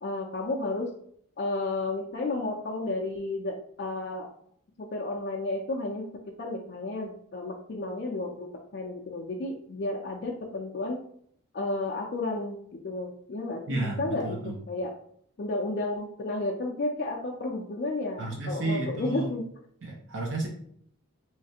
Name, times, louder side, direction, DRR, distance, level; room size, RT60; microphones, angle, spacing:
voice 1, 0.0-0.9 1.4-4.3 4.8-6.0 6.4-11.0 11.5-14.4 14.7-14.9 15.4-19.4, left 2 dB, 50° left, 0 dB, 0.4 m, -32 dB
voice 2, 13.7-14.6 18.2-19.3 19.8-20.5, right 2 dB, 60° right, -1 dB, 0.6 m, -32 dB
3.2 x 3.2 x 2.8 m, 0.64 s
head